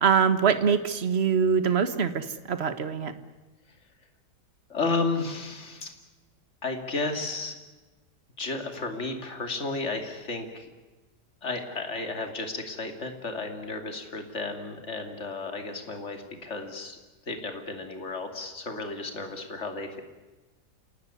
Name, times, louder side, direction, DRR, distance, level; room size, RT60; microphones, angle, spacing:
voice 1, 0.0-3.1, right 7 dB, 40° right, 11 dB, 1.6 m, -23 dB
voice 2, 4.7-5.9 6.6-7.6 8.4-10.7 11.4-17.0 17.3-20.0, left 3 dB, 40° left, 5 dB, 3.0 m, -33 dB
28.0 x 18.5 x 9.8 m, 1.2 s
omnidirectional pair, 1.8 m